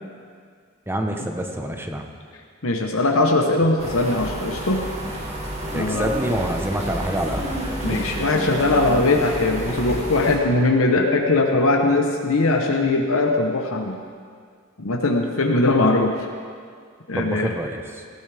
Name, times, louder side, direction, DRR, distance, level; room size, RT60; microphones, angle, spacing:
voice 1, 0.9-2.1 5.7-7.5 17.2-18.0, right 1 dB, 10° right, 3 dB, 1.0 m, -26 dB
voice 2, 2.6-4.8 5.7-6.1 7.8-14.0 14.8-16.1 17.1-17.5, left 2 dB, 75° left, 2 dB, 1.1 m, -20 dB
sound 1, 3.8-10.4, right 1 dB, 30° right, 2.5 m, -30 dB
18.0 x 15.0 x 3.5 m, 2.1 s
head